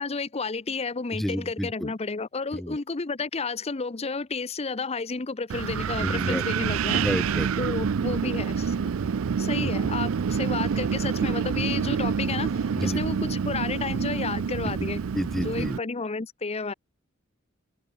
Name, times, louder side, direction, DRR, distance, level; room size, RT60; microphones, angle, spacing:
voice 1, 0.0-7.0 7.6-8.9 9.4-15.0 15.4-16.7, left 4 dB, 30° left, 0.7 m, -31 dB
voice 2, 1.1-1.9 2.5-2.8 6.0-6.4 6.9-7.5 9.6-9.7 12.8-13.0 14.8-14.9 15.1-15.8, equal, ahead, 0.4 m, -30 dB
Wind, 5.5-15.8, right 6 dB, 85° right, 0.4 m, -27 dB
open air
head